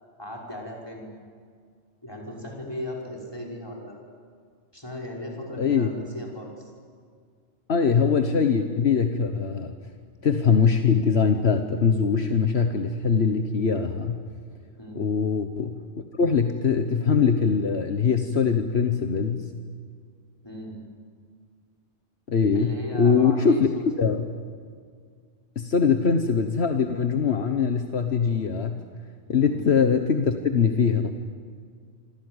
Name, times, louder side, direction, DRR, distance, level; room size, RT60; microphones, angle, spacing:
voice 1, 0.2-1.1 2.0-4.0 4.7-6.7 14.8-15.1 20.4-20.8 22.5-23.9 29.4-29.7, left 1 dB, 20° left, -1 dB, 5.7 m, -37 dB
voice 2, 5.6-5.9 7.7-9.7 10.2-14.2 15.0-15.8 16.1-19.5 22.3-23.7 24.0-24.2 25.6-28.8 29.3-31.1, left 6 dB, 65° left, 6 dB, 1.5 m, -22 dB
27.0 x 25.5 x 8.1 m, 2.1 s
omnidirectional pair, 1.2 m